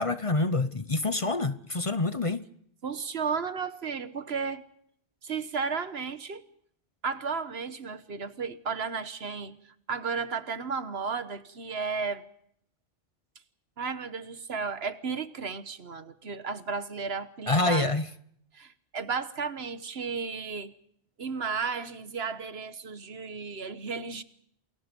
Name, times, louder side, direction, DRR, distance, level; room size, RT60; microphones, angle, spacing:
voice 1, 0.0-2.4 17.5-18.1, left 2 dB, 35° left, 1.0 m, -27 dB
voice 2, 2.8-4.6 5.2-6.4 7.0-9.6 9.9-12.2 13.8-17.9 18.5-20.7 21.2-24.2, right 5 dB, 70° right, 1.5 m, -33 dB
28.0 x 22.0 x 5.3 m
omnidirectional pair, 1.1 m